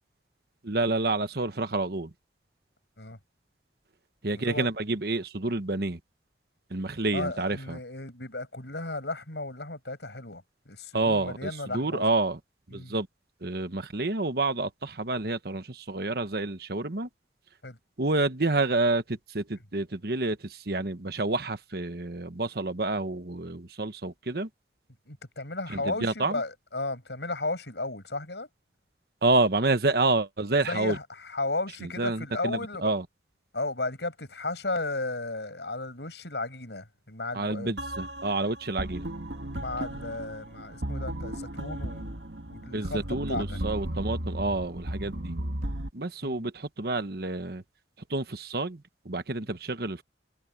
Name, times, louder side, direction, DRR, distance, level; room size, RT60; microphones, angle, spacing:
voice 1, 0.6-2.1 4.2-6.0 6.7-7.8 10.9-12.4 12.7-13.1 13.4-17.1 18.0-24.5 25.7-26.4 29.2-31.0 31.8-33.0 37.3-39.1 42.7-45.3 45.9-47.6 48.1-50.0, right 2 dB, 60° right, 1.2 m, -29 dB
voice 2, 7.1-12.0 12.7-12.9 17.6-17.8 25.1-28.5 30.7-32.9 33.5-37.8 39.5-42.1 42.5-43.6 46.2-46.5, left 2 dB, 75° left, 6.9 m, -34 dB
sound 1, 37.8-45.9, right 1 dB, 80° right, 2.2 m, -35 dB
head